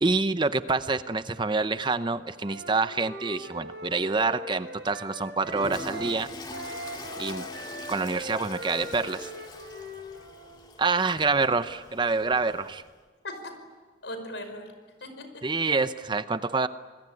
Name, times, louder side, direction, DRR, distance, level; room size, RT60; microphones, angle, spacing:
voice 1, 0.0-6.3 7.2-7.4 7.9-9.3 10.8-12.8 15.4-16.7, right 3 dB, 25° right, 12 dB, 0.7 m, -27 dB
Wind instrument woodwind instrument, 2.4-6.2 6.5-10.6, right 1 dB, 80° right, 6.7 m, -40 dB
Toilet flush, 5.4-13.0, left 2 dB, 25° left, 2.0 m, -43 dB
voice 2, 11.0-11.4 13.2-13.6 14.0-14.7 15.0-15.5, left 1 dB, 80° left, 8 dB, 5.2 m, -40 dB
27.0 x 21.5 x 9.7 m, 1.4 s
head